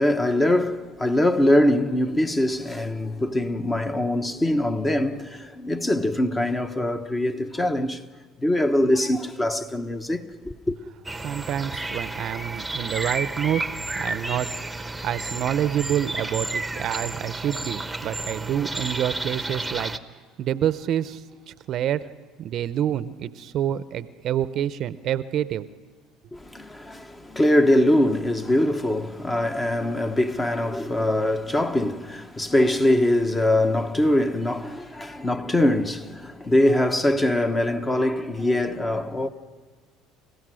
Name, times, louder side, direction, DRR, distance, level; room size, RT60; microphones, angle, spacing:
voice 1, 0.0-8.1 8.4-10.8 26.3-39.3, left 1 dB, 20° left, 1.1 m, -23 dB
sound 1, 11.0-20.0, right 2 dB, 10° right, 1.0 m, -31 dB
voice 2, 11.2-13.6 13.9-14.7 15.0-19.9 20.4-22.0 22.4-25.7, right 10 dB, 55° right, 0.7 m, -27 dB
29.0 x 16.0 x 6.3 m
supercardioid pair, 90°, 0 cm